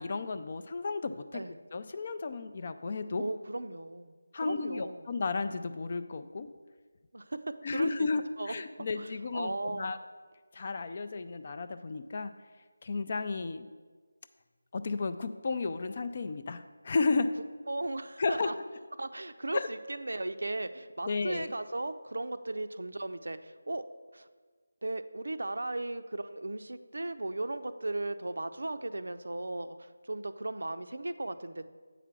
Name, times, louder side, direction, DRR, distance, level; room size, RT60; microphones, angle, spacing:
voice 1, 0.0-1.4 1.7-3.2 4.3-6.5 7.6-10.0 10.5-12.3 12.8-13.7 14.7-17.3 18.2-18.5 19.5-19.7 21.0-21.5, left 4 dB, 35° left, 10 dB, 0.4 m, -33 dB
voice 2, 3.2-4.2 4.4-5.0 7.1-7.9 8.4-8.5 9.0-9.9 17.7-18.5 19.0-23.8 24.1-24.3 24.8-31.7, right 2 dB, 75° right, 11 dB, 0.5 m, -36 dB
8.1 x 4.9 x 6.0 m, 1.4 s
figure-of-eight pair, 170°, 0 cm